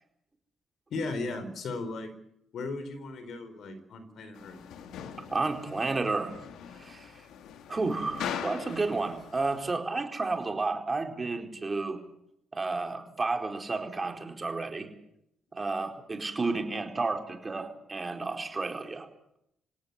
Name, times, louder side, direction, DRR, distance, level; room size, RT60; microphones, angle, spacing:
voice 1, 0.9-2.1 2.5-4.6, left 3 dB, 65° left, 11 dB, 4.3 m, -36 dB
sound 1, 4.3-9.7, left 8 dB, 80° left, 2.2 m, -41 dB
voice 2, 5.3-6.3 6.8-7.1 7.7-12.0 12.5-14.9 15.5-19.1, right 3 dB, 25° right, 4 dB, 4.5 m, -31 dB
27.0 x 17.5 x 8.4 m, 0.77 s
cardioid pair, 90°, 0 cm